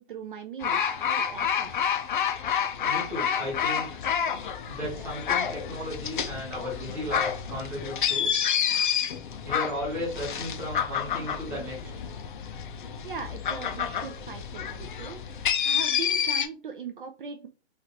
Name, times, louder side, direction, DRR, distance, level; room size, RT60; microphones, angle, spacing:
voice 1, 0.0-1.7 13.0-15.2 15.6-17.5, right 6 dB, 50° right, 5 dB, 0.4 m, -39 dB
sound 1, 0.6-16.5, left 8 dB, 45° left, 0.5 m, -29 dB
voice 2, 2.8-4.0 4.7-8.3 9.4-12.0, left 1 dB, 5° right, -4 dB, 0.8 m, -35 dB
3.2 x 2.5 x 2.8 m, 0.36 s
hypercardioid pair, 160°, 34 cm